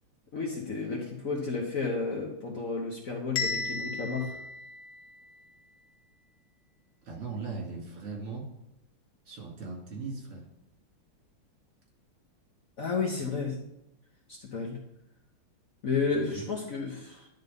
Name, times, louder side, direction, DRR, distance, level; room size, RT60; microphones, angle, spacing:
voice 1, 0.3-4.4 12.8-13.6 14.3-14.8 15.8-17.3, left 4 dB, 50° left, -1 dB, 1.1 m, -32 dB
Bell, 3.4-5.4, left 3 dB, 70° left, 1.5 m, -35 dB
voice 2, 7.0-8.5 9.2-10.4 16.1-16.5, right 4 dB, 80° right, -2 dB, 3.1 m, -39 dB
10.5 x 3.8 x 5.2 m, 0.83 s
omnidirectional pair, 2.4 m